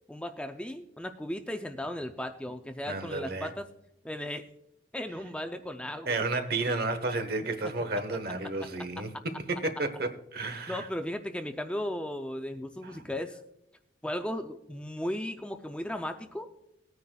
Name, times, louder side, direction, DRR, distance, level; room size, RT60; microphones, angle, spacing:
voice 1, 0.1-3.7 4.0-4.4 4.9-6.2 8.8-8.9 10.7-13.4 14.0-16.5, left 1 dB, 5° left, 0.4 m, -36 dB
voice 2, 2.9-3.5 6.1-10.9, right 2 dB, 55° right, 1.2 m, -32 dB
19.5 x 9.5 x 2.3 m
head